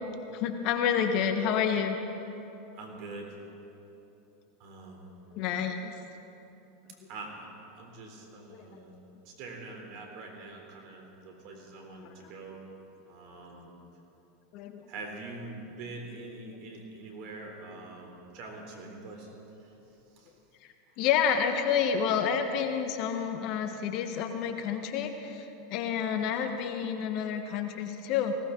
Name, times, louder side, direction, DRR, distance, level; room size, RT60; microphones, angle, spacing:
voice 1, 0.3-2.0 5.3-5.9 8.5-8.6 12.0-12.1 14.5-14.8 21.0-28.4, left 7 dB, 55° left, 6 dB, 1.4 m, -29 dB
voice 2, 2.7-3.3 4.6-5.1 7.1-7.5 7.8-9.0 9.3-12.6 13.1-13.7 14.9-19.3 19.6-19.7 20.1-20.3, right 3 dB, 55° right, 1 dB, 3.6 m, -44 dB
19.5 x 17.5 x 3.9 m, 3.0 s
hypercardioid pair, 90°, 0 cm